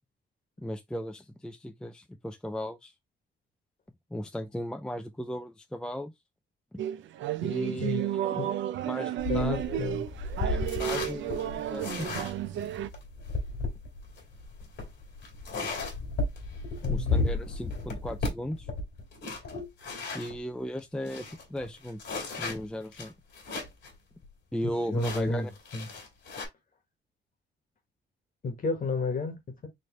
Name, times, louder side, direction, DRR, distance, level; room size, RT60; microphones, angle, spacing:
voice 1, 0.6-2.9 4.1-6.1 6.7-6.8 7.4-8.4 8.9-9.8 10.4-12.2 16.9-18.7 20.1-22.0 22.4-23.1 24.5-25.5, equal, 5° left, 0.4 m, -36 dB
sound 1, 6.8-12.9, right 11 dB, 75° right, 0.5 m, -32 dB
sound 2, 9.2-20.4 20.8-20.9 21.1-23.9 24.2-24.3 25.0-26.5, left 3 dB, 65° left, 2.2 m, -34 dB
voice 2, 9.3-10.1 16.8-17.4 24.6-25.9 28.4-29.7, left 3 dB, 45° left, 1.6 m, -32 dB
4.1 x 3.2 x 3.0 m
cardioid pair, 90°, 20 cm